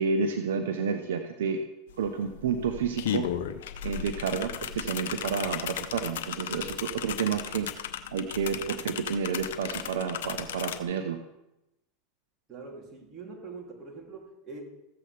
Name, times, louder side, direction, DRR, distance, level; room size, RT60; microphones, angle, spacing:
voice 1, 0.0-1.6 2.0-3.3 3.8-11.2, right 6 dB, 80° right, 7 dB, 0.8 m, -30 dB
sound 1, 1.9-2.0 2.3-10.8, left 10 dB, 75° left, 0.8 m, -35 dB
voice 2, 12.5-14.6, right 4 dB, 35° right, 0 dB, 2.9 m, -43 dB
14.5 x 7.9 x 3.4 m, 0.91 s
hypercardioid pair, 95°, 0 cm